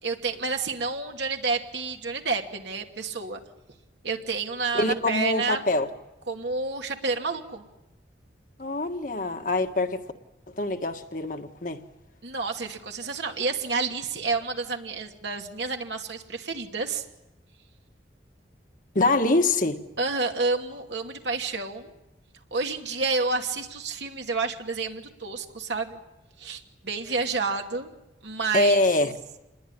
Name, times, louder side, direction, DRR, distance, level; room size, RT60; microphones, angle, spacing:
voice 1, 0.0-3.4 4.0-5.7 6.3-7.6 12.2-17.0 20.0-21.9 22.5-26.0 26.4-27.9 28.2-28.8, right 4 dB, 70° right, 2.6 m, -29 dB
voice 2, 4.7-5.9 8.6-10.0 10.6-11.8 18.9-19.8 28.5-29.1, left 2 dB, 45° left, 1.6 m, -24 dB
28.0 x 21.0 x 10.0 m
head